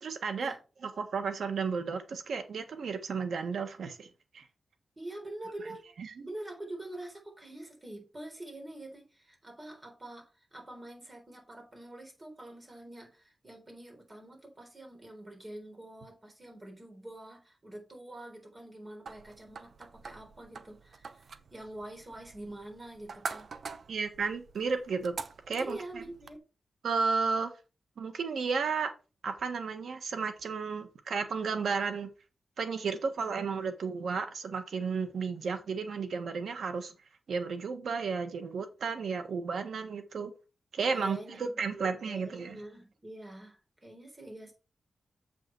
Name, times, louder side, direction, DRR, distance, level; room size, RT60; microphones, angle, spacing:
voice 1, 0.0-0.5 0.8-4.1 4.3-4.4 6.0-6.3 23.9-25.2 25.5-26.0 26.8-27.5 28.0-28.9 29.2-32.1 32.6-36.9 37.3-40.3 40.7-42.6, right 5 dB, 80° right, 1.4 m, -33 dB
voice 2, 5.0-5.8 6.2-23.5 25.6-26.4 40.9-44.5, right 1 dB, 25° right, 3.7 m, -46 dB
sound 1, 19.1-26.4, right 4 dB, 60° right, 0.7 m, -45 dB
7.3 x 5.9 x 4.5 m
wide cardioid pair, 110°, 0 cm